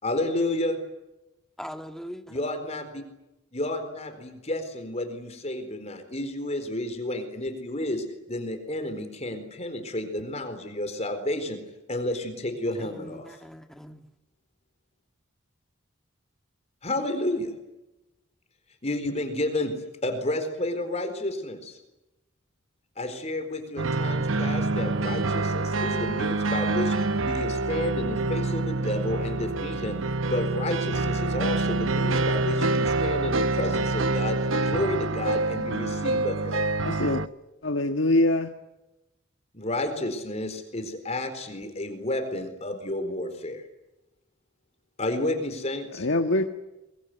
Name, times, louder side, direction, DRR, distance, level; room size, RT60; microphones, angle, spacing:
voice 1, 0.0-0.8 2.3-3.0 3.5-11.6 11.9-13.3 16.8-17.5 18.8-19.7 20.0-21.8 23.0-26.9 27.2-36.6 39.5-43.6 45.0-46.1, left 1 dB, 35° left, 4.2 m, -31 dB
voice 2, 1.6-2.4 12.8-14.0, equal, ahead, 1.6 m, -41 dB
sound 1, 23.8-37.3, right 3 dB, 80° right, 1.0 m, -26 dB
voice 3, 36.9-37.2 37.6-38.5 45.9-46.5, left 1 dB, 70° left, 1.6 m, -23 dB
23.0 x 23.0 x 9.6 m
head